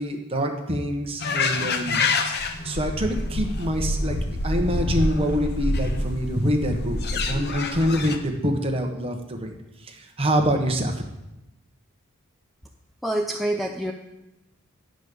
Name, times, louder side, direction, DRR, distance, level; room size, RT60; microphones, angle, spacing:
voice 1, 0.0-2.0 2.6-4.2 4.4-9.5 9.8-11.0, equal, 25° right, 2 dB, 1.1 m, -25 dB
sound 1, 1.2-8.2, left 2 dB, 50° left, 0.8 m, -26 dB
voice 2, 13.0-13.9, right 1 dB, ahead, 1 dB, 0.4 m, -26 dB
9.8 x 5.2 x 6.7 m, 0.95 s
head